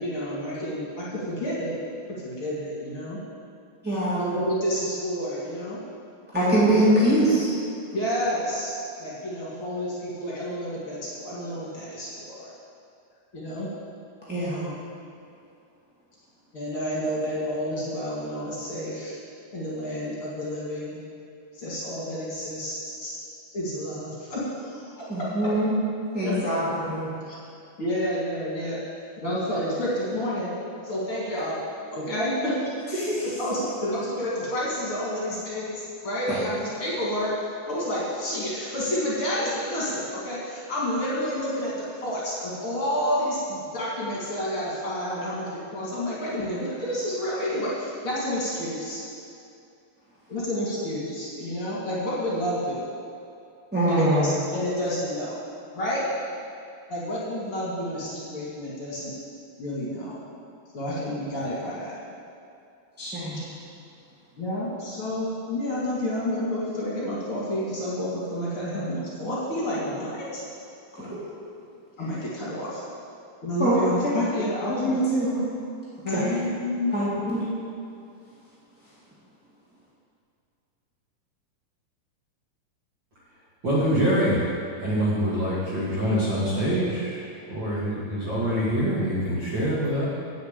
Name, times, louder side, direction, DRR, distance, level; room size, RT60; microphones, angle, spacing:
voice 1, 0.0-1.8 2.2-3.2 4.1-5.8 6.4-6.9 7.9-8.7 9.0-12.5 13.3-13.7 14.5-14.7 16.5-19.2 19.5-21.0 21.5-23.1 23.5-25.4 26.2-26.5 27.3-27.4 27.8-28.8 29.2-30.5 30.8-31.6 31.9-32.8 33.2-37.3 37.7-49.0 50.3-52.8 53.9-55.4 55.7-56.0 56.9-59.1 59.6-60.2 60.7-62.0 64.4-70.4 71.0-71.2 72.0-72.8 73.4-75.1 76.0-76.9, equal, 45° left, -7 dB, 2.6 m, -29 dB
voice 2, 3.8-4.2 6.3-7.5 14.3-14.5 25.1-25.7 26.1-26.6 26.9-27.1 33.0-33.2 53.7-54.3 63.0-63.4 71.1-71.4 73.6-73.7 74.0-74.1 74.7-75.3 76.1-76.2 76.9-77.5, right 1 dB, 5° right, -10 dB, 0.9 m, -23 dB
voice 3, 83.6-84.5 84.8-87.2 87.5-90.1, equal, 40° right, -8 dB, 2.2 m, -25 dB
7.9 x 7.1 x 8.2 m, 2.6 s
omnidirectional pair, 3.9 m